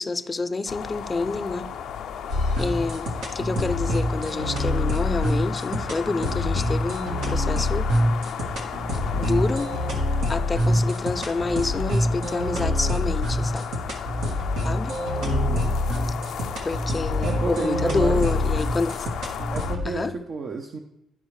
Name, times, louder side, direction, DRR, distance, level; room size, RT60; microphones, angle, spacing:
voice 1, 0.0-1.7 2.6-7.9 8.9-9.7 10.3-13.7 14.6-15.0 16.6-18.9 19.9-20.1, left 3 dB, 25° left, 12 dB, 0.5 m, -28 dB
sound 1, 0.7-19.8, left 8 dB, 80° left, 0.6 m, -35 dB
sound 2, 2.3-19.9, left 1 dB, 85° right, 1.4 m, -26 dB
voice 2, 15.2-15.8 17.2-18.2 19.5-20.8, right 5 dB, 55° right, 2 dB, 0.7 m, -31 dB
12.0 x 4.8 x 3.2 m, 0.84 s
cardioid pair, 90°, 0 cm